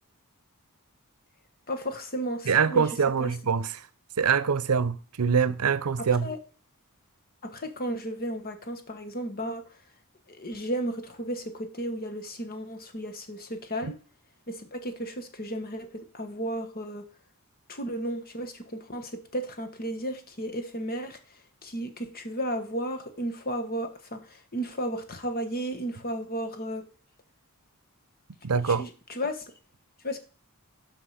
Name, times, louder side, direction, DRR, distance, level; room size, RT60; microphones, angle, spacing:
voice 1, 1.7-2.9 3.2-3.3 6.0-6.4 7.4-9.6 10.3-14.0 14.5-17.1 17.7-21.2 21.6-26.9 28.5-29.5 30.0-30.2, right 1 dB, 45° left, 1.4 m, -34 dB
voice 2, 2.5-3.8 4.2-6.3 13.8-13.9 28.4-28.8, right 6 dB, 90° right, 0.6 m, -24 dB
10.0 x 5.9 x 5.0 m
head